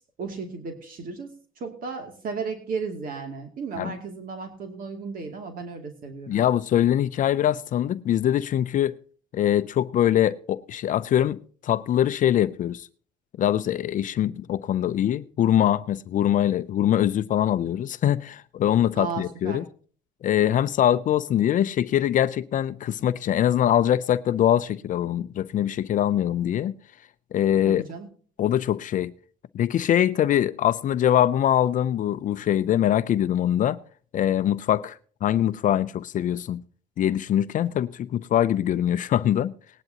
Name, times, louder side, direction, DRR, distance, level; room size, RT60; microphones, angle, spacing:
voice 1, 0.2-1.3 1.6-6.4 19.0-19.6 27.7-28.1, right 5 dB, 55° right, 2.6 m, -34 dB
voice 2, 6.3-8.9 9.3-12.9 13.4-19.6 20.2-26.7 27.3-27.8 28.4-29.1 29.5-33.8 34.1-36.6 37.0-39.5, left 11 dB, 50° left, 0.5 m, -23 dB
19.0 x 10.5 x 2.9 m
cardioid pair, 110°, 17 cm